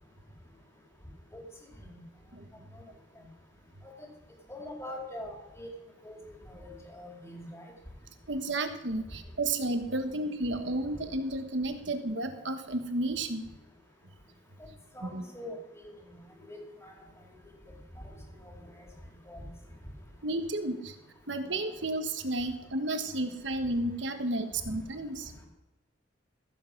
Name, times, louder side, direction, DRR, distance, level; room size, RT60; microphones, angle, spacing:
voice 1, 2.3-2.7 8.3-13.4 15.0-15.2 20.2-20.9 21.3-25.3, right 2 dB, 70° right, 7 dB, 1.4 m, -32 dB
voice 2, 4.5-5.7 6.0-6.2 6.5-7.6 14.9-15.9 16.4-16.9 18.0-18.1 19.3-19.4, left 1 dB, 15° left, 0 dB, 2.7 m, -43 dB
15.0 x 7.5 x 6.1 m, 1.1 s
head